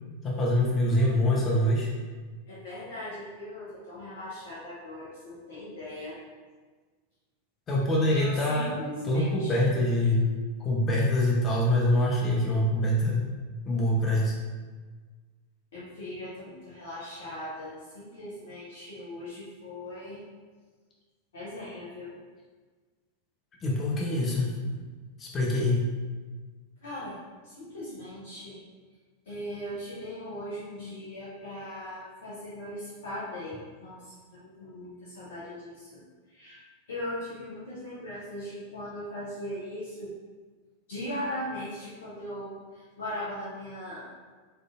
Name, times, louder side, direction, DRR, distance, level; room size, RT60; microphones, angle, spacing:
voice 1, 0.2-1.9 7.7-8.7 9.0-10.3 10.6-13.3 13.6-14.3 23.6-24.5 25.2-25.8, left 1 dB, 25° left, -3 dB, 0.7 m, -25 dB
voice 2, 0.9-1.3 2.5-6.2 8.1-9.6 15.7-20.2 21.3-22.1 24.7-24.8 26.8-27.2 27.4-28.6 29.3-36.0 36.3-36.6 36.9-40.1 40.9-44.1, left 1 dB, 60° left, -9 dB, 0.9 m, -39 dB
4.3 x 3.1 x 2.4 m, 1.4 s
figure-of-eight pair, 90°, 0 cm